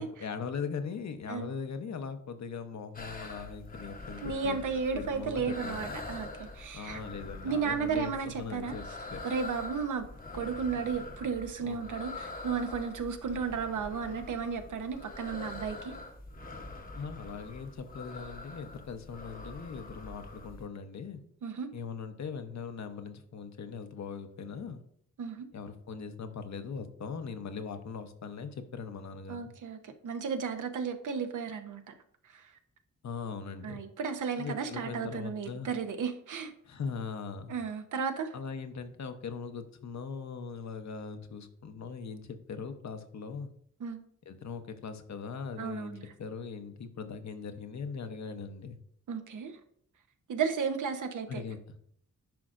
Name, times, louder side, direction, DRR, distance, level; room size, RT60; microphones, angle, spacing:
voice 1, 0.0-4.6 4.9-5.9 6.7-8.8 9.1-9.2 11.6-11.8 16.9-21.2 21.7-24.8 25.5-29.5 33.0-33.8 34.4-35.7 36.6-37.5 38.3-43.5 44.3-48.8 51.3-51.6, left 5 dB, 60° left, 8 dB, 0.8 m, -40 dB
sound 1, 2.9-20.7, left 2 dB, 25° left, 0.9 m, -44 dB
voice 2, 4.2-7.0 7.4-8.8 9.2-10.1 10.3-15.9 21.4-21.7 25.2-25.5 29.3-31.9 32.2-32.5 33.6-36.5 37.5-38.3 43.8-44.0 45.6-46.1 49.1-49.6 50.3-51.4, right 6 dB, 75° right, 7 dB, 0.8 m, -34 dB
10.5 x 5.1 x 2.5 m, 0.65 s
cardioid pair, 65°, 31 cm